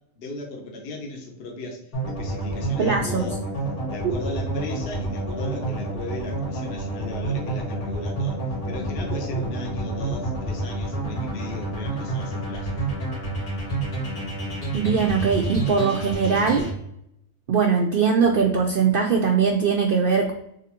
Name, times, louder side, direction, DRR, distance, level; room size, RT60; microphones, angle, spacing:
voice 1, 0.2-3.4 3.9-12.7, left 2 dB, 50° left, 0 dB, 0.9 m, -36 dB
sound 1, 1.9-16.7, right 2 dB, 85° left, 2.3 m, -29 dB
voice 2, 2.8-3.2 14.7-16.7 17.5-20.3, right 5 dB, 80° right, 2 dB, 0.4 m, -21 dB
3.9 x 3.5 x 2.8 m, 0.77 s
omnidirectional pair, 1.5 m